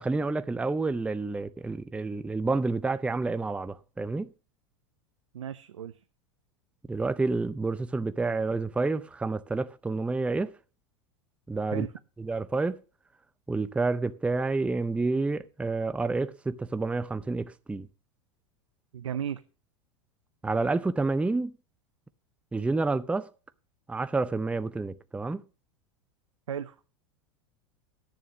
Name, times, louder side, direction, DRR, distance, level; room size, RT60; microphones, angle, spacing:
voice 1, 0.0-4.3 6.9-10.5 11.5-11.9 12.2-12.8 13.5-17.9 20.4-21.5 22.5-23.3 23.9-25.4, right 3 dB, 5° right, 0.5 m, -29 dB
voice 2, 5.3-6.0 11.7-11.9 18.9-19.4 26.5-26.7, right 9 dB, 85° right, 0.6 m, -34 dB
10.5 x 7.2 x 6.1 m
hypercardioid pair, 95°, 16 cm